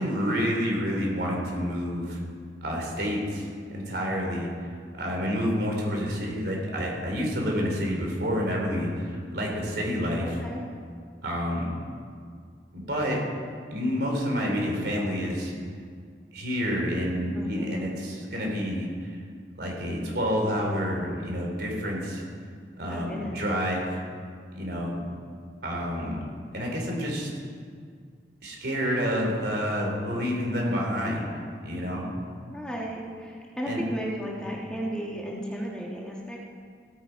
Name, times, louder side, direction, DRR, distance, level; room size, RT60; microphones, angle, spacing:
voice 1, 0.0-2.2 2.6-4.5 5.0-10.4 11.2-11.7 12.7-13.2 13.7-15.5 16.3-19.2 19.6-22.2 22.8-24.0 24.5-25.0 25.6-26.2 26.5-27.3 28.4-31.3 31.6-32.1 33.7-33.8, equal, 65° right, -1 dB, 3.2 m, -28 dB
voice 2, 10.2-10.6 17.3-17.8 22.8-23.4 32.5-36.4, right 1 dB, 5° left, -3 dB, 1.4 m, -34 dB
16.0 x 9.5 x 4.6 m, 2.1 s
head